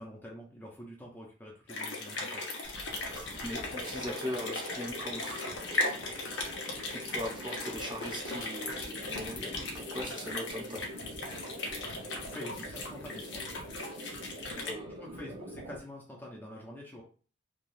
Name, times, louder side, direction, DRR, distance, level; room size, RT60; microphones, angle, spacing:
voice 1, 0.0-2.4 12.2-13.4 15.0-17.0, equal, 10° left, -3 dB, 0.5 m, -46 dB
sound 1, 1.7-14.7, left 2 dB, 70° left, 0.8 m, -38 dB
sound 2, 2.6-15.8, right 1 dB, 85° right, 0.5 m, -46 dB
voice 2, 3.1-5.5 6.6-10.9 14.6-15.3, equal, 25° right, -1 dB, 0.7 m, -40 dB
3.2 x 2.3 x 2.6 m, 0.39 s
head